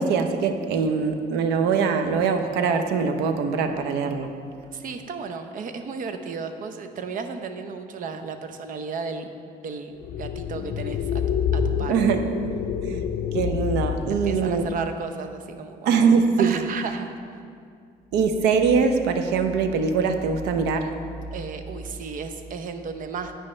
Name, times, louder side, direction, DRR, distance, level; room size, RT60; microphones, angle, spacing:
voice 1, 0.0-4.3 11.9-12.2 12.8-13.0 13.3-14.6 15.9-16.6 18.1-20.9, right 5 dB, 85° right, 7 dB, 0.7 m, -22 dB
voice 2, 4.7-9.3 9.6-11.9 14.0-16.1 16.4-17.1 21.3-23.3, right 5 dB, 55° right, 8 dB, 0.7 m, -34 dB
sound 1, 10.0-14.9, left 7 dB, 65° left, 0.5 m, -28 dB
10.0 x 9.1 x 3.2 m, 2.3 s
cardioid pair, 110°, 17 cm